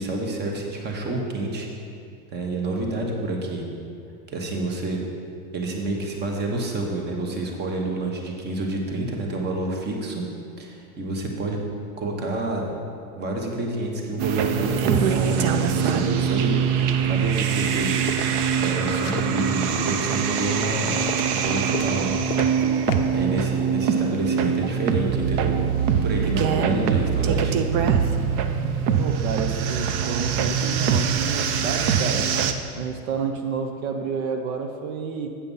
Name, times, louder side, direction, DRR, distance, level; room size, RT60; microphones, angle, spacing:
voice 1, 0.0-1.7 2.3-3.6 4.3-5.0 5.5-10.2 10.6-11.6 12.0-12.7 13.2-18.0 18.6-21.0 21.3-22.1 22.8-25.6 25.9-27.5, right 2 dB, 25° right, 1 dB, 1.1 m, -28 dB
sound 1, 14.2-32.5, right 7 dB, 40° right, 0.5 m, -23 dB
sound 2, 17.8-18.3 19.0-20.2 20.6-21.5 21.7-22.6 22.9-23.0, left 10 dB, 45° left, 0.5 m, -34 dB
voice 2, 29.0-32.3 32.7-35.3, right 5 dB, 70° right, 4 dB, 0.9 m, -29 dB
8.5 x 5.6 x 5.4 m, 2.4 s
supercardioid pair, 135°, 44 cm